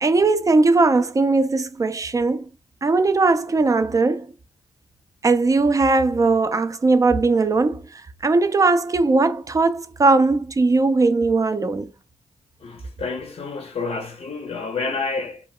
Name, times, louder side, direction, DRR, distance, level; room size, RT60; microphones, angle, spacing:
voice 1, 0.0-2.5 2.8-4.3 5.2-7.9 8.2-11.9, right 3 dB, 30° right, 0.4 m, -19 dB
voice 2, 12.6-15.5, left 4 dB, 55° left, 0.5 m, -29 dB
2.2 x 2.1 x 3.6 m
cardioid pair, 60°, 12 cm